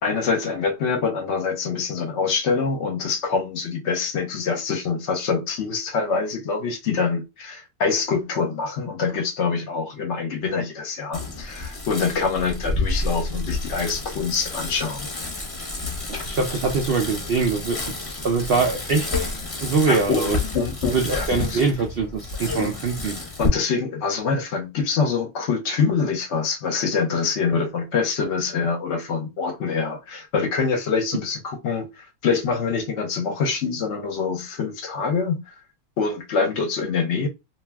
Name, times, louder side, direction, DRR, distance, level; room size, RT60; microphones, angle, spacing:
voice 1, 0.0-15.1 19.9-21.6 23.4-35.5 36.0-37.3, left 5 dB, 60° left, 0.9 m, -25 dB
Bicycle, 11.1-23.5, left 3 dB, 30° left, 0.8 m, -30 dB
voice 2, 16.3-19.1 19.6-20.4 20.9-23.2, right 4 dB, 80° right, 0.5 m, -23 dB
2.5 x 2.3 x 3.3 m
omnidirectional pair, 1.6 m